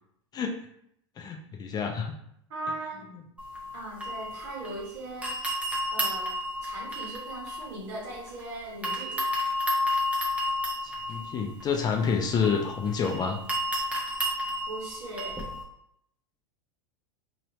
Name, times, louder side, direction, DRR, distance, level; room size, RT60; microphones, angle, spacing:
voice 1, 1.2-2.1 10.8-13.4, left 6 dB, 25° left, 3 dB, 0.4 m, -28 dB
voice 2, 2.5-3.1 3.7-5.4 5.9-6.3 6.6-9.2 14.7-15.4, right 2 dB, 65° right, -3 dB, 1.4 m, -38 dB
sound 1, 3.4-4.9 5.2-8.4 8.8-15.6, left 1 dB, 10° right, 0.7 m, -32 dB
2.8 x 2.6 x 3.0 m, 0.72 s
hypercardioid pair, 110°, 16 cm